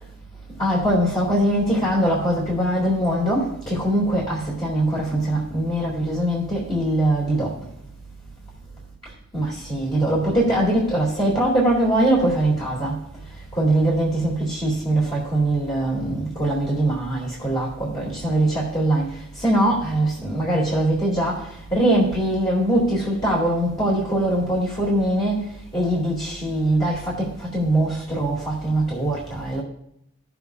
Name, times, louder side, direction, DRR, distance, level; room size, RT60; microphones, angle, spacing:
voice 1, 0.6-7.5 9.3-12.9 13.5-19.1 19.4-21.4 21.7-25.4 25.7-29.6, right 1 dB, 20° left, -6 dB, 2.2 m, -22 dB
16.0 x 7.0 x 2.3 m, 0.75 s
head